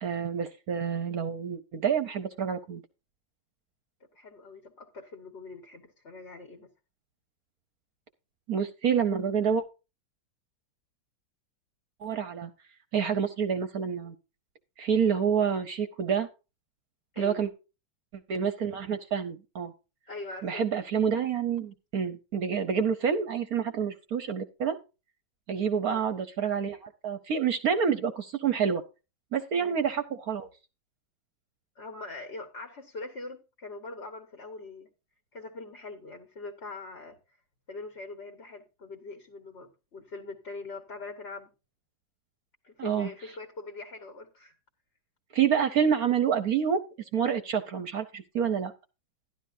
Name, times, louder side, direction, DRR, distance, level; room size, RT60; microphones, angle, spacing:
voice 1, 0.0-2.8 8.5-9.6 12.0-12.5 12.9-14.1 14.8-16.3 17.2-17.5 18.3-19.7 20.4-24.8 25.5-28.8 29.3-30.5 42.8-43.1 45.3-46.8 47.1-48.7, right 7 dB, 60° right, 1.1 m, -28 dB
voice 2, 4.1-6.7 17.1-17.5 20.1-20.7 25.9-26.1 29.6-29.8 31.7-34.9 35.3-37.2 37.7-41.5 42.6-44.5, left 3 dB, 35° left, 1.4 m, -42 dB
12.5 x 11.5 x 2.6 m
omnidirectional pair, 2.1 m